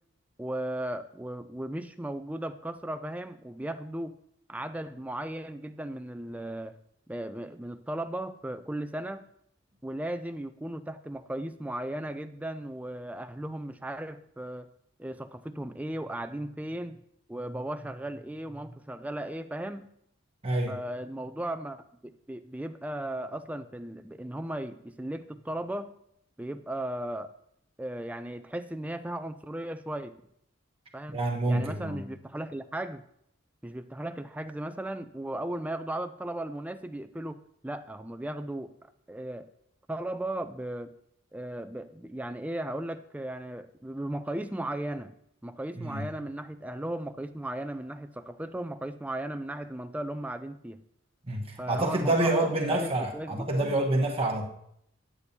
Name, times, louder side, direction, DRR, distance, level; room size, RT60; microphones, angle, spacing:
voice 1, 0.4-4.2 4.5-6.8 7.1-9.2 9.8-14.7 15.0-17.0 17.3-19.9 20.7-25.9 26.4-27.3 27.8-30.1 30.9-31.2 31.5-33.0 33.6-39.5 39.9-40.9 41.3-45.1 45.4-50.8 51.6-53.8, right 1 dB, 5° right, 9 dB, 0.3 m, -36 dB
voice 2, 20.4-20.8 31.1-32.0 45.8-46.1 51.2-54.5, right 2 dB, 30° right, 0 dB, 1.2 m, -27 dB
9.9 x 8.4 x 2.7 m, 0.72 s
head